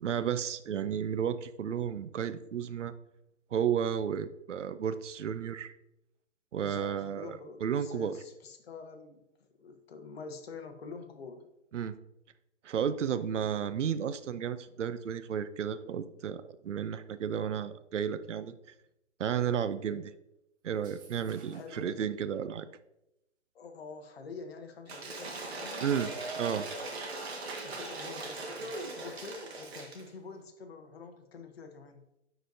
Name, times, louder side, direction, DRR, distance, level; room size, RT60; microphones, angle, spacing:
voice 1, 0.0-2.9 3.5-5.7 6.5-8.1 11.7-12.0 12.6-18.5 19.2-20.1 20.6-22.7 25.8-26.1 26.4-26.7, right 8 dB, 80° right, 13 dB, 0.6 m, -32 dB
voice 2, 6.6-11.4 21.5-22.1 23.5-26.0 27.5-32.1, left 4 dB, 55° left, 6 dB, 1.0 m, -46 dB
sound 1, 20.7-21.9, right 4 dB, 15° right, 0.6 m, -57 dB
Cheering / Applause / Crowd, 24.9-30.1, right 2 dB, 60° right, 1.6 m, -39 dB
10.0 x 4.1 x 2.6 m, 0.86 s
hypercardioid pair, 145°, 36 cm